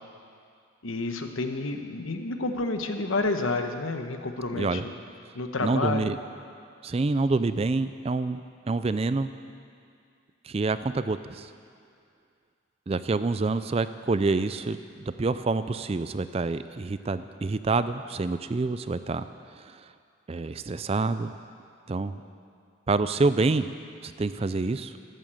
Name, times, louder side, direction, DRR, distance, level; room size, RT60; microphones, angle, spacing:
voice 1, 0.8-4.9 5.3-6.1, left 3 dB, 70° left, 6 dB, 1.1 m, -30 dB
voice 2, 4.5-4.8 5.6-6.2 6.8-8.4 8.7-9.3 10.4-11.5 12.9-19.3 19.5-19.9 20.3-21.4 21.9-22.2 22.9-23.7 24.0-25.0, right 3 dB, 30° right, 12 dB, 0.3 m, -27 dB
13.5 x 11.0 x 7.7 m, 2.3 s
head